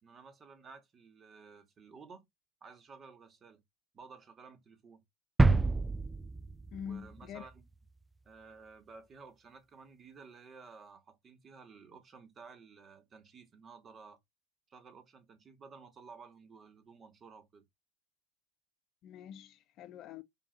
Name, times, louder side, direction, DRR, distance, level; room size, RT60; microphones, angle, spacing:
voice 1, 0.0-2.2 2.6-3.6 3.9-5.0 6.8-7.7 8.2-14.2 14.7-17.6, right 5 dB, 35° right, 2.6 m, -54 dB
sound 1, 5.4-7.2 7.5-7.6, right 3 dB, 15° right, 0.5 m, -28 dB
voice 2, 6.7-7.5 19.0-20.2, left 8 dB, 50° left, 1.0 m, -45 dB
5.3 x 5.3 x 4.1 m
hypercardioid pair, 80°, 0 cm